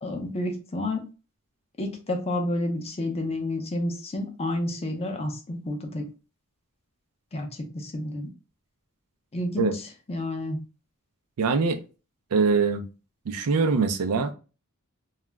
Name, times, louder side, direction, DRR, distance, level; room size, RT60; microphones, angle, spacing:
voice 1, 0.0-1.1 1.8-6.1 7.3-8.3 9.3-9.8 10.1-10.6, left 1 dB, 25° left, 0.5 m, -30 dB
voice 2, 11.4-11.8 12.3-12.8 13.3-14.3, right 5 dB, 80° right, 0.4 m, -23 dB
2.3 x 2.0 x 3.2 m
head